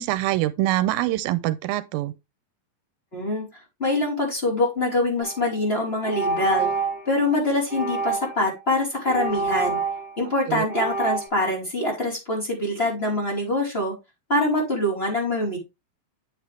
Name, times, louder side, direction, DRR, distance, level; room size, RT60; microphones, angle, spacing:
voice 1, 0.0-2.1 10.5-10.7, right 15 dB, 85° right, 2.4 m, -24 dB
voice 2, 3.1-3.5 3.8-6.7 7.1-9.8 10.2-13.9 14.3-15.6, left 2 dB, 15° left, 4.6 m, -24 dB
sound 1, 5.2-5.4 6.0-7.1 7.7-8.5 9.0-10.3 10.7-11.3, right 4 dB, 30° right, 6.2 m, -27 dB
9.0 x 7.3 x 3.5 m
omnidirectional pair, 4.1 m